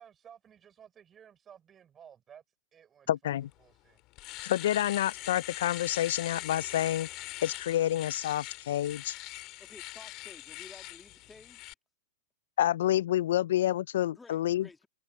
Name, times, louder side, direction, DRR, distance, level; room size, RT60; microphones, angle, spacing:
voice 1, 0.0-2.4 2.7-3.3 3.6-4.0, right 8 dB, 25° right, 4.3 m, -55 dB
voice 2, 3.1-3.5 4.4-7.1 7.4-9.2 12.6-14.7, left 12 dB, 70° left, 0.4 m, -28 dB
Domestic sounds home sounds, 3.5-3.6 4.0-11.7, left 20 dB, 45° left, 2.8 m, -42 dB
voice 3, 9.6-11.7 14.2-14.9, left 3 dB, 10° left, 2.2 m, -53 dB
hypercardioid pair, 115°, 0 cm